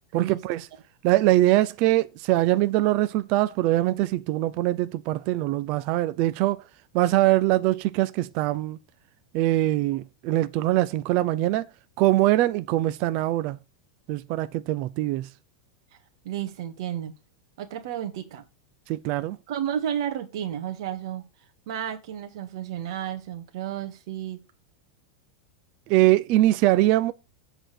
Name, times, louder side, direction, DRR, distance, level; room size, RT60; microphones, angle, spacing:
voice 1, 0.1-0.7 1.0-6.6 6.9-8.8 9.3-11.7 12.0-13.6 14.1-15.3 18.9-19.4 25.9-27.1, right 16 dB, 40° right, 0.5 m, -22 dB
voice 2, 16.2-17.1 17.6-18.4 19.5-21.2 21.7-24.4, right 10 dB, 60° right, 1.9 m, -32 dB
7.9 x 4.5 x 6.7 m
supercardioid pair, 170°, 3 cm